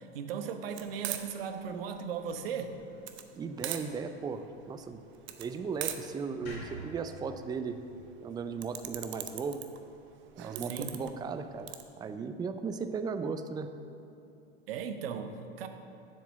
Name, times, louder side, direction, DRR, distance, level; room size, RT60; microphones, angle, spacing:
voice 1, 0.0-2.8 10.7-11.0 14.7-15.7, right 6 dB, 65° right, 8 dB, 1.0 m, -37 dB
sound 1, 0.7-11.8, right 11 dB, 40° right, 0.8 m, -43 dB
voice 2, 3.4-5.0 5.4-7.8 8.2-9.6 10.4-13.7, right 5 dB, 15° right, 9 dB, 0.4 m, -36 dB
sound 2, 6.5-9.6, equal, 80° left, 2.6 m, -47 dB
7.4 x 7.2 x 7.2 m, 2.7 s
hypercardioid pair, 90°, 31 cm